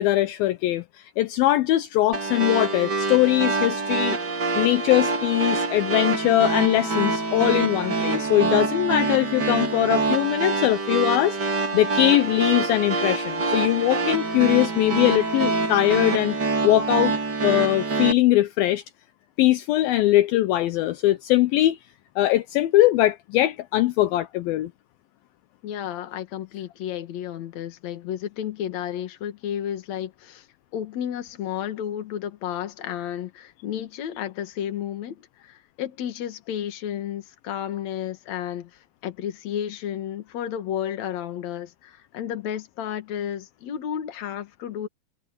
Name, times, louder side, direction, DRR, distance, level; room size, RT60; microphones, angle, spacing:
voice 1, 0.0-4.2 4.6-16.4 16.6-17.1 17.4-18.8 19.4-21.8 22.2-24.7, left 15 dB, 75° left, 2.5 m, -21 dB
sound 1, 2.1-18.1, right 3 dB, 30° right, 3.3 m, -25 dB
voice 2, 25.6-30.5 30.7-44.9, left 10 dB, 55° left, 2.6 m, -32 dB
omnidirectional pair, 4.4 m